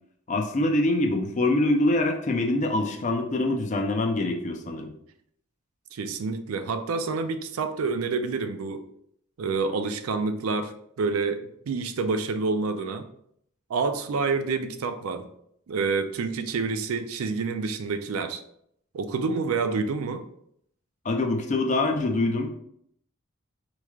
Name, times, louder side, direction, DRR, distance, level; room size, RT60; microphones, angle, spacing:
voice 1, 0.3-4.9 21.0-22.6, left 2 dB, 35° left, 3 dB, 0.5 m, -24 dB
voice 2, 5.9-8.8 9.4-13.0 13.7-15.3 15.7-18.4 18.9-20.2, right 4 dB, 85° right, 9 dB, 0.4 m, -28 dB
4.5 x 3.1 x 2.4 m, 0.70 s
head